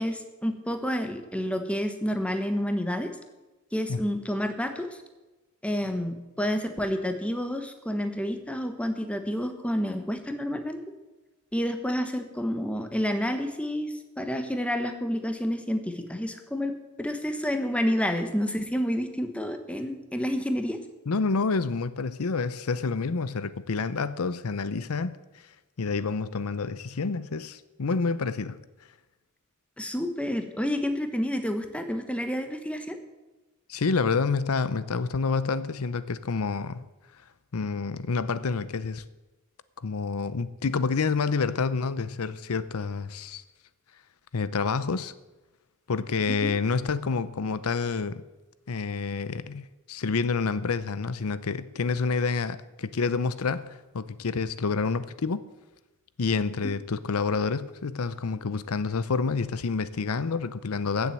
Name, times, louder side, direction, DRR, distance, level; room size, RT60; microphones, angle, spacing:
voice 1, 0.0-3.1 3.7-4.9 5.6-10.8 11.5-20.8 29.8-33.0 46.4-46.5 56.6-56.7, equal, 5° left, 1.3 m, -29 dB
voice 2, 21.1-25.4 25.8-28.6 33.7-36.8 37.5-39.0 39.8-43.4 44.3-45.1 45.9-48.2 48.7-55.4 56.2-61.1, left 4 dB, 80° left, 0.7 m, -28 dB
15.0 x 7.4 x 7.5 m
head